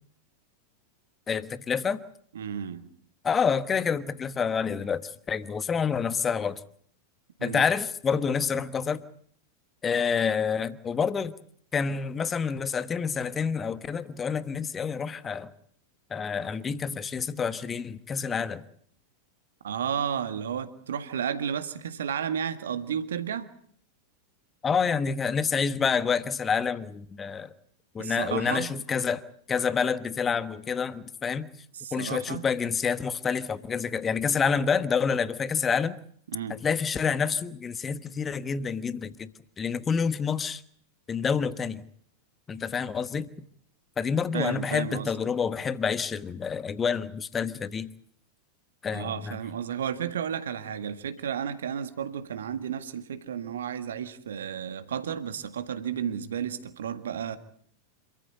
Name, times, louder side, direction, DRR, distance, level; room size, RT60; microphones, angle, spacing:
voice 1, 1.3-2.0 3.2-6.6 7.4-9.0 9.8-11.3 11.7-15.5 16.1-18.6 24.6-27.5 27.9-29.2 29.5-31.5 31.9-35.9 36.5-39.3 39.6-40.6 41.1-41.8 42.5-43.3 44.0-47.9 48.8-49.4, left 6 dB, 20° left, 1.2 m, -28 dB
voice 2, 2.4-2.9 7.4-7.6 19.6-23.5 28.0-28.7 31.7-32.5 36.3-36.6 44.3-45.1 48.9-57.4, right 8 dB, 65° right, 1.8 m, -32 dB
27.0 x 14.5 x 9.5 m
figure-of-eight pair, 90°, 0 cm